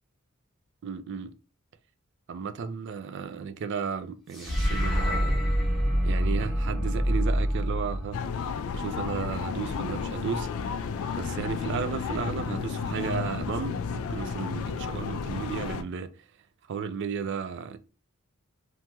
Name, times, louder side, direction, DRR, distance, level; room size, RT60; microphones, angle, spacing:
voice 1, 0.8-1.3 2.3-5.3 6.0-8.2 8.7-10.9 11.1-16.3 16.7-17.8, right 6 dB, 55° right, 0.3 m, -34 dB
sound 1, 4.3-8.7, equal, ahead, 1.0 m, -26 dB
sound 2, 8.1-15.8, left 6 dB, 70° left, 0.3 m, -32 dB
2.9 x 2.9 x 2.2 m
head